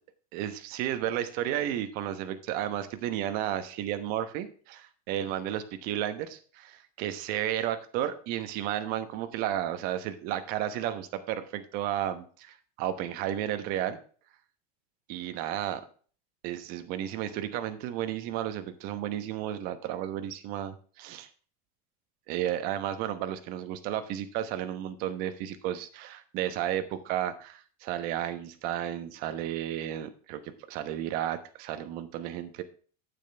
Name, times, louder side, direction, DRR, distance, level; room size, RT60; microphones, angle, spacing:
voice 1, 0.3-14.0 15.1-15.8 16.4-21.3 22.3-30.4 30.7-32.6, right 11 dB, 45° right, 10 dB, 1.0 m, -33 dB
8.9 x 8.9 x 3.4 m, 0.42 s
supercardioid pair, 165°, 20 cm